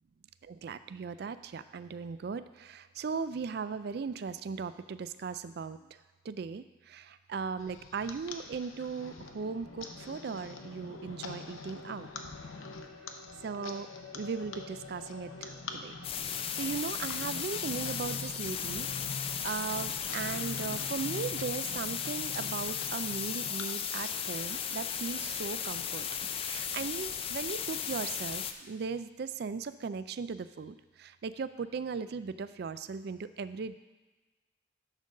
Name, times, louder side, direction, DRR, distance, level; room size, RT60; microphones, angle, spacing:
voice 1, 0.4-5.8 6.3-12.1 13.4-13.9 14.1-15.6 15.8-16.0 16.5-26.1 26.4-33.8, right 5 dB, 55° right, 13 dB, 0.3 m, -38 dB
sound 1, 7.6-24.4, left 3 dB, 90° left, 0.8 m, -44 dB
sound 2, 16.0-28.5, left 8 dB, 30° left, 0.3 m, -36 dB
11.0 x 3.8 x 6.4 m, 1.2 s
head